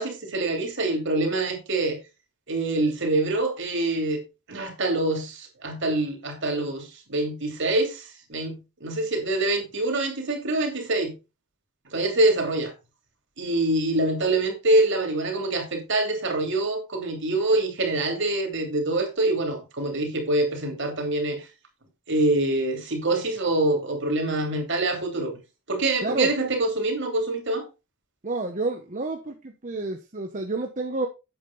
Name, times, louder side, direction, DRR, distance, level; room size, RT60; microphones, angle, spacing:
voice 1, 0.0-2.0 2.5-4.2 4.5-11.1 11.9-12.7 13.4-21.5 22.1-25.4 25.7-27.6, right 2 dB, 55° right, 2.9 m, -25 dB
voice 2, 26.0-26.3 28.2-31.1, right 2 dB, 35° right, 0.9 m, -29 dB
8.8 x 7.3 x 4.0 m
head